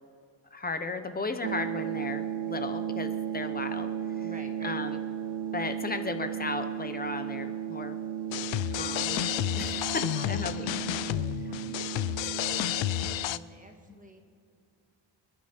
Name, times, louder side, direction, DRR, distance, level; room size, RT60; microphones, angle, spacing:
voice 1, 0.5-3.9 4.2-4.3 4.6-5.0 5.5-8.0 8.7-10.8 13.9-14.1, left 3 dB, 20° left, 8 dB, 0.7 m, -35 dB
sound 1, 1.4-13.4, right 9 dB, 60° right, 0.7 m, -35 dB
voice 2, 4.2-4.8 9.5-12.7 13.2-14.2, right 2 dB, 15° right, 3 dB, 1.5 m, -50 dB
sound 2, 8.3-13.4, left 15 dB, 80° left, 0.6 m, -31 dB
29.0 x 10.0 x 4.3 m, 2.4 s
wide cardioid pair, 160°, 45 cm